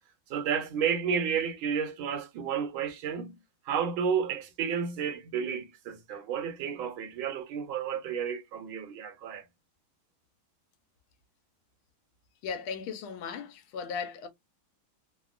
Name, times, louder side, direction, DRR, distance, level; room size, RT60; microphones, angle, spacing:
voice 1, 0.3-9.4, right 7 dB, 75° right, 1.5 m, -31 dB
voice 2, 12.4-14.3, left 6 dB, 80° left, 1.4 m, -36 dB
3.4 x 2.2 x 2.3 m
omnidirectional pair, 2.3 m